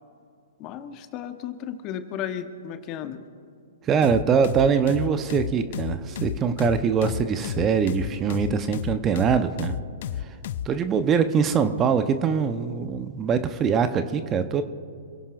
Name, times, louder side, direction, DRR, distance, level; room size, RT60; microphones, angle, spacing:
voice 1, 0.6-3.2, left 9 dB, 35° left, 8 dB, 1.2 m, -34 dB
voice 2, 3.8-9.7 10.6-14.6, right 6 dB, 20° right, 10 dB, 0.9 m, -23 dB
sound 1, 4.0-10.7, left 11 dB, 55° left, 0.5 m, -32 dB
27.5 x 16.5 x 2.6 m, 2.4 s
figure-of-eight pair, 115°, 0 cm